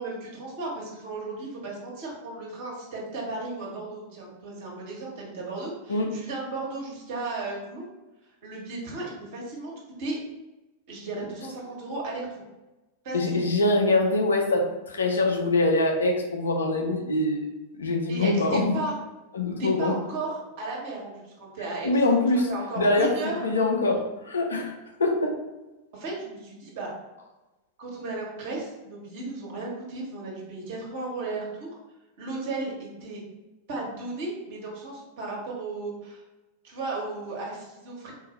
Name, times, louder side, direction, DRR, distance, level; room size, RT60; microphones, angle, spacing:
voice 1, 0.0-7.9 8.4-9.7 10.0-10.2 10.9-12.4 13.0-13.4 18.1-18.9 19.6-23.4 25.9-26.9 27.8-31.8 32.2-33.2 33.7-36.2 36.6-38.1, right 3 dB, 50° right, -3 dB, 1.4 m, -35 dB
voice 2, 13.1-17.5 17.8-18.7 19.3-19.9 21.8-22.4 22.8-25.3, left 2 dB, 70° left, 2 dB, 0.6 m, -24 dB
3.8 x 2.6 x 4.0 m, 1.1 s
figure-of-eight pair, 90°, 0 cm